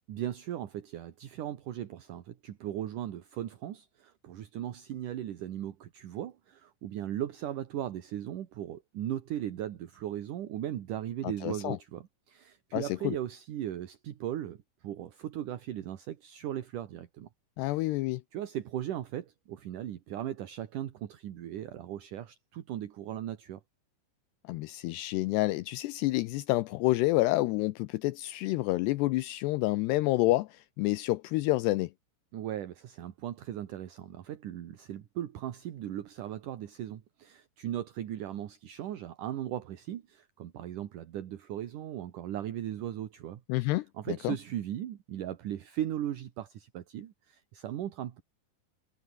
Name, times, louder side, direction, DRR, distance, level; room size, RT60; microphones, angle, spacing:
voice 1, 0.1-17.3 17.6-17.8 18.3-23.6 32.3-48.2, right 11 dB, 60° right, 2.4 m, -38 dB
voice 2, 11.4-11.8 12.7-13.2 17.6-18.2 24.5-31.9 43.5-44.4, left 19 dB, 80° left, 2.5 m, -28 dB
omnidirectional pair, 5.3 m